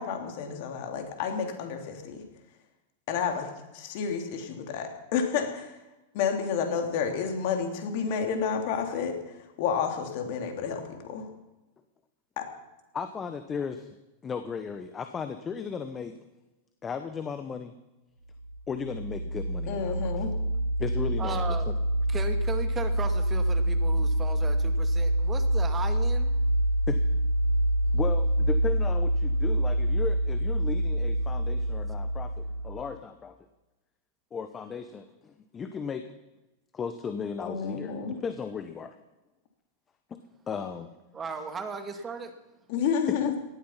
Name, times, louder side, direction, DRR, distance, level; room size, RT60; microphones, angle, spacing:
voice 1, 0.0-2.2 3.1-5.7 6.1-9.2 9.6-11.3 12.4-12.5 19.7-20.3 37.4-38.2 42.7-43.3, left 6 dB, 60° left, 4 dB, 3.2 m, -30 dB
voice 2, 12.9-14.0 14.2-16.2 16.8-17.7 18.7-20.3 20.8-21.7 26.9-27.0 27.9-33.4 34.3-36.1 36.7-38.9 40.1-40.2 40.5-40.9, left 6 dB, 25° left, 9 dB, 1.3 m, -36 dB
sound 1, 18.4-32.8, right 1 dB, 90° right, 2.3 m, -26 dB
voice 3, 21.2-21.7 22.1-26.3 27.8-28.0 41.1-42.3, right 4 dB, 25° right, 7 dB, 2.3 m, -36 dB
18.0 x 13.0 x 5.9 m, 1.0 s
hypercardioid pair, 95°, 0 cm